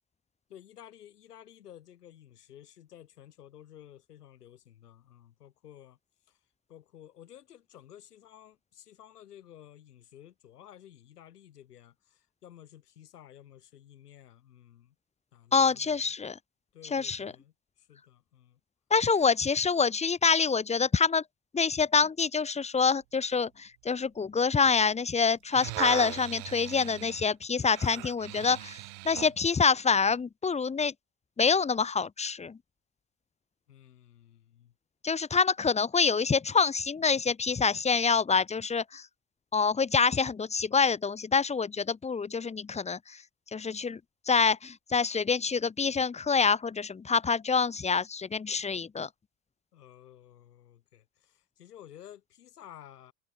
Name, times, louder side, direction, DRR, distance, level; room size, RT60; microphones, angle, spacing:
voice 1, 0.5-6.0 6.3-6.4 6.7-15.0 15.3-16.1 16.7-18.6 33.7-34.7 48.5-48.8 49.7-53.1, left 11 dB, 80° left, 6.9 m, -53 dB
voice 2, 15.5-16.4 16.9-17.3 18.9-21.2 21.5-28.8 29.0-30.9 31.4-32.6 35.0-39.1 39.5-43.2 43.5-44.0 44.3-49.1, left 5 dB, 15° left, 1.0 m, -26 dB
sound 1, 25.3-29.4 30.0-30.1, right 29 dB, 60° right, 1.3 m, -39 dB
hypercardioid pair, 85°, 45 cm